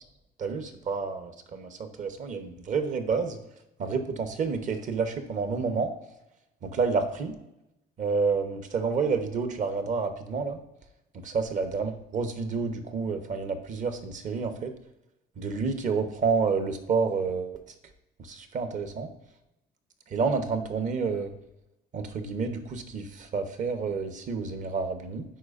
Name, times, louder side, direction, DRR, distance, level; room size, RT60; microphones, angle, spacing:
voice 1, 0.4-3.4 3.8-5.9 6.6-7.3 8.0-10.6 11.1-14.7 15.4-17.6 18.2-19.1 20.1-21.3 21.9-25.2, right 5 dB, 50° right, 8 dB, 0.9 m, -29 dB
10.5 x 4.1 x 2.5 m, 0.90 s
cardioid pair, 110°, 17 cm